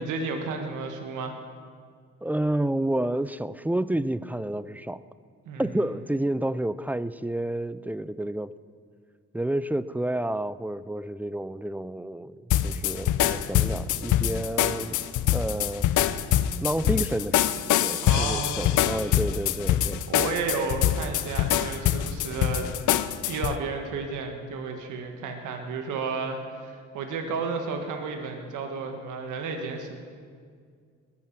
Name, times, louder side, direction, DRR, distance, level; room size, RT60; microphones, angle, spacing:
voice 1, 0.0-1.4 5.4-5.6 18.0-18.7 20.1-30.0, right 4 dB, 80° right, 4 dB, 1.6 m, -32 dB
voice 2, 2.2-5.0 5.6-8.5 9.3-12.4 12.6-15.0 15.3-15.9 16.6-17.5 17.8-20.1, right 1 dB, 5° right, 16 dB, 0.4 m, -30 dB
sound 1, 12.5-23.6, left 11 dB, 80° left, 0.7 m, -24 dB
21.0 x 9.4 x 6.0 m, 2.1 s
cardioid pair, 90°, 30 cm